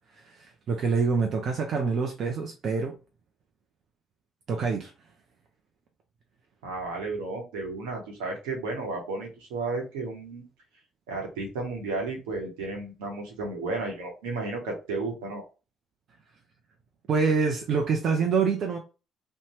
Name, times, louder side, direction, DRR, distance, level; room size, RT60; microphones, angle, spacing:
voice 1, 0.2-2.9 4.5-4.9 17.1-18.8, right 5 dB, 55° right, 0.5 m, -26 dB
voice 2, 6.6-10.5 11.1-15.4, right 3 dB, 80° right, 0.9 m, -33 dB
2.7 x 2.1 x 3.0 m
hypercardioid pair, 50°, 0 cm